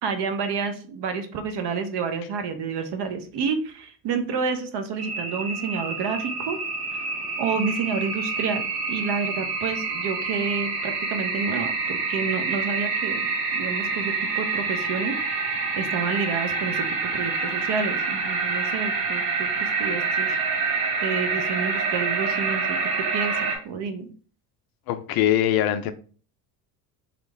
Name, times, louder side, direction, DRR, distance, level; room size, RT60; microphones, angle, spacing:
voice 1, 0.0-6.6 6.9-7.1 7.4-8.6 8.9-15.2 15.8-20.4 21.0-23.4 23.6-24.1, right 5 dB, 50° right, 0.8 m, -29 dB
sound 1, 5.0-23.6, right 4 dB, 75° right, 1.1 m, -27 dB
voice 2, 24.9-25.9, left 11 dB, 50° left, 0.5 m, -22 dB
3.1 x 2.5 x 3.2 m
hypercardioid pair, 70°, 50 cm